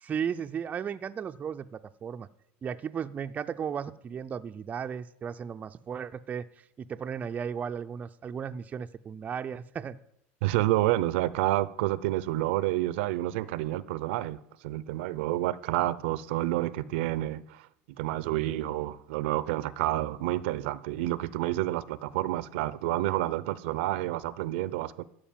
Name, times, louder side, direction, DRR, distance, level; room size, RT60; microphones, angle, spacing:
voice 1, 0.0-2.3 2.6-6.5 6.8-10.0, right 7 dB, 25° right, 0.4 m, -35 dB
voice 2, 10.4-14.4 14.6-17.7 18.0-25.0, right 16 dB, 85° right, 0.5 m, -29 dB
12.5 x 4.9 x 8.8 m
supercardioid pair, 135°, 6 cm